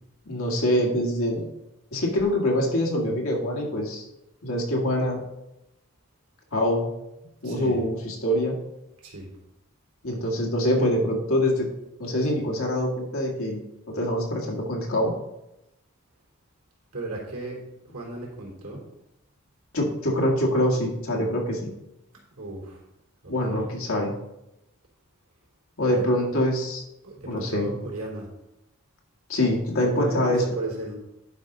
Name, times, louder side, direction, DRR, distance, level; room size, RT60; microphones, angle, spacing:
voice 1, 0.3-1.5 1.9-4.1 4.4-5.2 6.5-6.9 7.4-8.6 10.0-11.7 12.0-13.6 13.9-15.1 19.7-21.7 23.3-24.1 25.8-26.8 27.3-27.7 29.3-30.4, left 1 dB, 70° left, -1 dB, 1.9 m, -24 dB
voice 2, 7.4-7.8 9.0-9.3 16.9-18.8 22.4-22.8 23.2-23.8 25.8-26.0 27.0-28.3 29.8-30.9, right 2 dB, 85° right, -3 dB, 3.2 m, -35 dB
11.0 x 5.2 x 3.9 m, 0.91 s
head